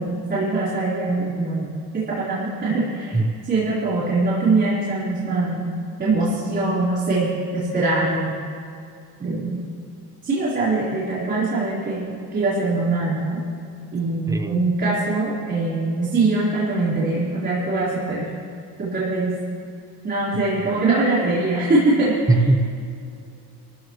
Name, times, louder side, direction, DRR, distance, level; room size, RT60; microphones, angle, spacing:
voice 1, 0.0-5.7 6.0-8.4 9.2-9.6 10.2-13.4 13.9-18.3 18.8-19.3 20.0-22.4, right 2 dB, 25° right, -10 dB, 4.0 m, -22 dB
voice 2, 14.3-14.6 20.7-20.8 22.3-22.6, right 2 dB, 10° right, 6 dB, 0.9 m, -19 dB
28.0 x 14.0 x 3.2 m, 2.4 s
cardioid pair, 140°, 39 cm